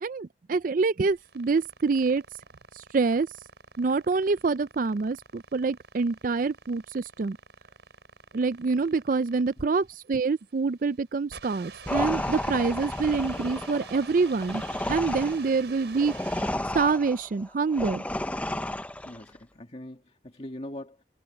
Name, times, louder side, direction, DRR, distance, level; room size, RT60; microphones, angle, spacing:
voice 1, 0.0-2.2 2.7-3.3 3.8-7.4 8.3-14.6 14.9-16.2 16.7-18.0, right 4 dB, 45° right, 0.4 m, -26 dB
sound 1, 1.0-16.9, right 4 dB, 65° right, 6.2 m, -48 dB
sound 2, 11.9-19.2, left 1 dB, 10° left, 0.6 m, -32 dB
voice 2, 19.0-21.0, left 1 dB, 35° left, 2.2 m, -41 dB
head